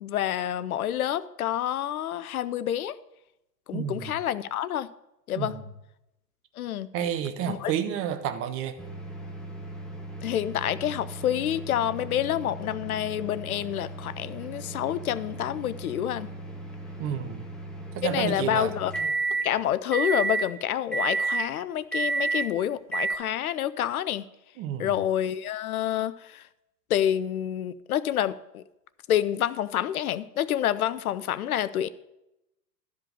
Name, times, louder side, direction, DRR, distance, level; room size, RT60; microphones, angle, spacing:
voice 1, 0.0-3.0 3.7-4.9 5.3-5.5 6.6-6.9 7.5-7.7 10.2-16.3 18.0-18.9 19.4-24.2 24.8-26.4 26.9-28.6 29.1-31.9, left 11 dB, 60° left, 0.5 m, -28 dB
voice 2, 3.7-4.1 5.3-5.6 6.9-8.8 17.0-17.5 17.9-18.7 24.6-24.9, right 9 dB, 25° right, 0.8 m, -30 dB
sound 1, 8.8-19.5 19.9-20.5 20.9-21.5 21.9-22.5 22.9-23.2, right 3 dB, ahead, 1.0 m, -33 dB
12.5 x 5.2 x 6.5 m
figure-of-eight pair, 95°, 49 cm